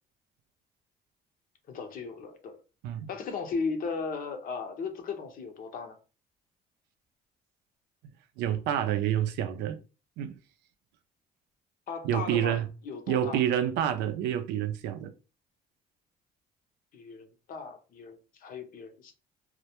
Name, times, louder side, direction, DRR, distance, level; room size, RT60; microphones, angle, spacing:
voice 1, 1.7-2.6 3.1-6.0 11.9-13.4 16.9-19.1, left 5 dB, 55° left, 0.6 m, -36 dB
voice 2, 8.4-9.8 10.2-10.4 12.0-12.7 13.1-15.1, right 10 dB, 85° right, 0.4 m, -28 dB
2.1 x 2.1 x 2.8 m
cardioid pair, 110°, 17 cm